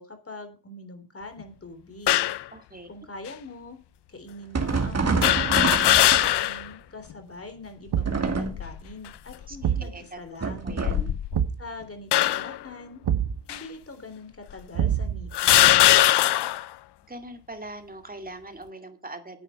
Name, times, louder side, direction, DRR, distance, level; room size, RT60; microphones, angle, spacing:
voice 1, 0.0-2.2 2.9-3.8 4.1-10.8 11.6-13.0 13.5-15.9, left 2 dB, 35° left, 7 dB, 3.4 m, -43 dB
sound 1, 2.1-2.4 3.3-3.4 5.2-6.7 7.1-7.2 8.3-8.8 9.5-9.7 10.7-11.5 12.1-12.6 13.5-13.6 14.5-14.6 15.3-16.7, left 13 dB, 85° left, 0.6 m, -20 dB
voice 2, 2.5-2.9 9.5-10.2 10.6-11.1 17.1-19.4, right 2 dB, 20° right, 6 dB, 2.3 m, -41 dB
sound 2, 4.5-6.7 8.0-8.8 10.4-11.2, right 4 dB, 40° right, 2.3 m, -27 dB
Thump thud, 7.9-8.4 9.6-10.0 11.3-11.7 13.0-13.4 14.7-15.3, right 9 dB, 90° right, 1.1 m, -26 dB
9.9 x 9.1 x 5.6 m, 0.33 s
cardioid pair, 85°, 40 cm